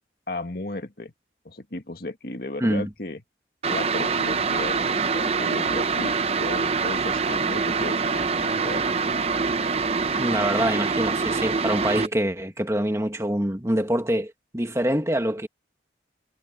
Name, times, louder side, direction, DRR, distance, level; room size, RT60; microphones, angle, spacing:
voice 1, 0.3-1.1 1.4-3.2 3.7-9.1, left 2 dB, 55° left, 2.0 m, -35 dB
sound 1, 3.6-12.1, right 4 dB, 35° right, 0.6 m, -25 dB
voice 2, 10.2-15.5, right 1 dB, 15° right, 1.8 m, -25 dB
head